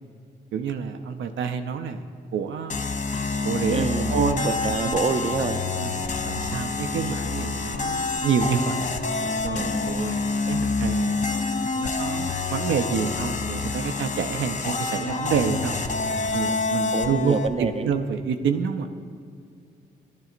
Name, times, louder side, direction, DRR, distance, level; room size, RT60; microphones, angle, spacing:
voice 1, 0.5-2.1 2.3-2.8 3.4-4.5 4.8-5.0 5.8-5.9 6.2-8.9 9.4-11.2 11.7-15.7 16.3-18.9, right 6 dB, 75° right, 6 dB, 0.5 m, -28 dB
sound 1, 2.7-17.5, left 3 dB, 40° left, 0.6 m, -27 dB
voice 2, 3.7-4.2 4.4-5.6 9.5-9.9 16.9-17.9, right 4 dB, 30° right, 8 dB, 0.6 m, -27 dB
10.5 x 10.5 x 2.5 m, 2.4 s
supercardioid pair, 55°, 20 cm